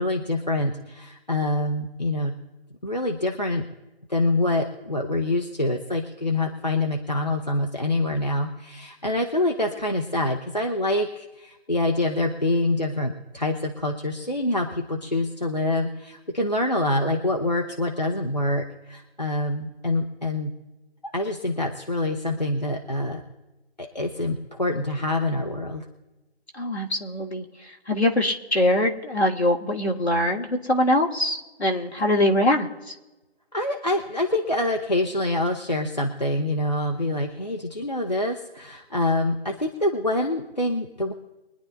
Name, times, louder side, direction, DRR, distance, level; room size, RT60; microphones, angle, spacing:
voice 1, 0.0-2.3 2.8-3.7 4.1-20.5 21.1-23.2 23.8-25.8 33.5-41.1, left 1 dB, 40° left, 1 dB, 0.9 m, -26 dB
voice 2, 26.5-27.4 27.9-32.7, left 1 dB, 85° left, 0 dB, 1.9 m, -23 dB
23.5 x 10.5 x 2.6 m, 1.1 s
figure-of-eight pair, 175°, 32 cm